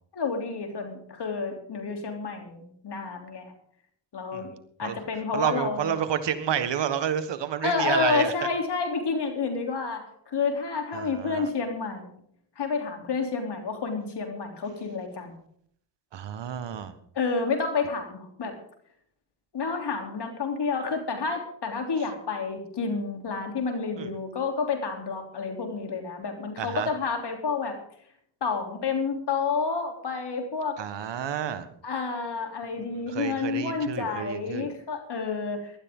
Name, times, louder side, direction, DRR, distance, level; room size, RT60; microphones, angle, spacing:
voice 1, 0.1-3.5 4.1-4.5 4.8-5.9 7.6-12.2 12.6-15.3 17.2-18.6 19.5-27.8 28.4-30.8 31.8-35.7, left 4 dB, 65° left, 4 dB, 3.6 m, -29 dB
voice 2, 4.3-5.0 5.3-8.3 10.9-11.5 16.1-16.9 24.0-24.1 26.6-26.9 30.8-31.7 33.1-34.7, right 8 dB, 70° right, 11 dB, 1.6 m, -30 dB
19.0 x 12.5 x 3.9 m, 0.65 s
supercardioid pair, 50°, 44 cm